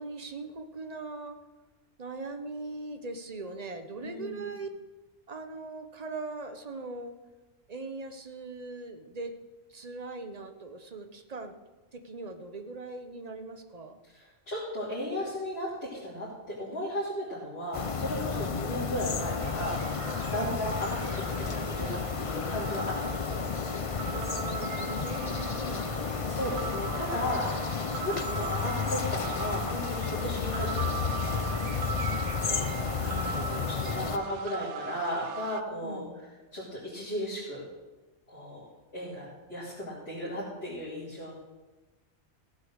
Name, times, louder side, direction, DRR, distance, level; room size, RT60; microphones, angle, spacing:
voice 1, 0.0-1.4 2.0-4.7 5.3-7.1 7.7-9.3 9.7-11.5 11.9-14.0 18.3-18.5 20.3-20.6 24.1-27.4 32.4-34.3 35.8-36.3, right 3 dB, 35° right, 7 dB, 1.1 m, -41 dB
voice 2, 4.0-4.4 14.1-21.0 21.4-23.5 24.5-24.9 26.2-27.5 28.0-31.5 33.0-36.0 36.5-37.6 38.3-38.6 38.9-41.3, equal, 65° left, -9 dB, 3.6 m, -35 dB
sound 1, 17.7-34.2, left 5 dB, 35° left, 0.6 m, -32 dB
sound 2, 19.4-35.6, right 5 dB, 85° right, 1.0 m, -40 dB
15.5 x 8.1 x 6.4 m, 1.2 s
omnidirectional pair, 1.2 m